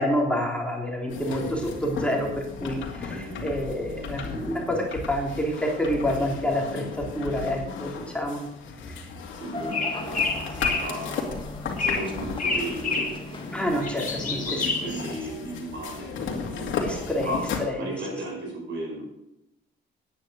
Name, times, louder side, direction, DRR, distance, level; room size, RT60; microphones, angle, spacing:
voice 1, 0.0-8.4 13.5-14.7 16.8-17.3 17.6-17.9, equal, 5° left, -1 dB, 3.1 m, -28 dB
sound 1, 1.1-17.6, left 5 dB, 75° left, 2.3 m, -35 dB
voice 2, 3.1-3.5 9.3-11.3 11.8-13.7 14.3-16.9 17.2-17.4 17.8-19.0, right 1 dB, 70° right, -1 dB, 5.3 m, -35 dB
sound 2, 9.5-15.2, left 2 dB, 25° left, 2.0 m, -39 dB
sound 3, 9.7-10.9 11.8-12.1 12.4-13.2 13.6-15.0, left 4 dB, 40° left, 2.8 m, -28 dB
9.8 x 9.3 x 6.3 m, 0.90 s
cardioid pair, 90°, 20 cm